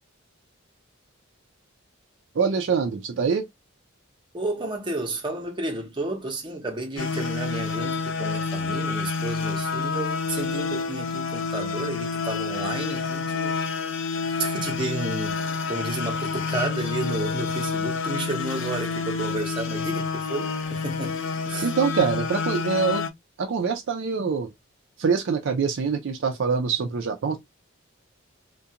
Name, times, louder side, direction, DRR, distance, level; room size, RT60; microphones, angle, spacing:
voice 1, 2.3-3.4 21.6-23.0 23.4-24.5 25.0-27.4, right 5 dB, 60° right, 0.4 m, -24 dB
voice 2, 4.3-13.6 14.4-21.7, right 2 dB, 25° right, 0.7 m, -32 dB
sound 1, 7.0-23.1, left 4 dB, 65° left, 0.4 m, -28 dB
2.4 x 2.2 x 2.7 m
head